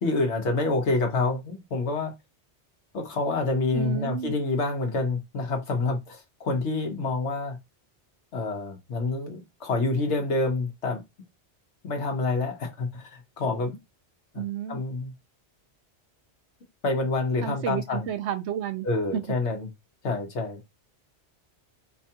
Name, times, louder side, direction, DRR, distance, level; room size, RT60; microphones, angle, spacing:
voice 1, 0.0-2.1 2.9-7.6 8.3-11.0 11.8-13.8 14.3-14.4 14.7-15.1 16.8-18.1 18.8-19.7 20.0-20.6, left 3 dB, 75° left, 1.3 m, -27 dB
voice 2, 3.7-4.4 14.3-14.8 17.4-18.9 19.1-19.2, right 9 dB, 75° right, 0.9 m, -31 dB
4.5 x 2.3 x 2.8 m
omnidirectional pair, 1.2 m